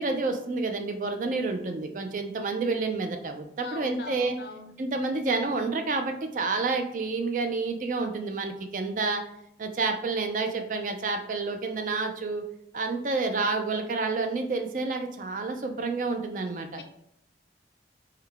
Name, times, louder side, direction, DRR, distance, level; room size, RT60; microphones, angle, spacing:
voice 1, 0.0-4.4 4.8-9.2 9.6-12.4 12.7-16.8, right 3 dB, 45° right, 5 dB, 0.4 m, -29 dB
voice 2, 3.6-4.7 16.7-16.8, left 3 dB, 65° left, 5 dB, 0.5 m, -41 dB
3.8 x 2.1 x 3.3 m, 0.74 s
head